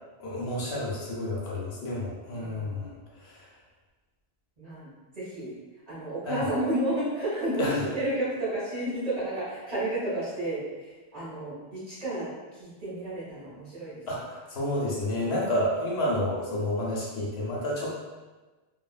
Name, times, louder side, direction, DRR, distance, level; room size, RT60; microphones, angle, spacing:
voice 1, 0.2-2.9 3.2-3.4 6.2-6.5 7.6-7.9 14.1-18.0, left 1 dB, 70° left, -5 dB, 0.9 m, -30 dB
voice 2, 2.4-2.8 4.6-4.9 5.2-5.5 5.9-10.6 11.1-12.3 12.6-13.9, right 1 dB, 40° right, -10 dB, 1.1 m, -31 dB
2.7 x 2.3 x 2.3 m, 1.2 s
omnidirectional pair, 1.1 m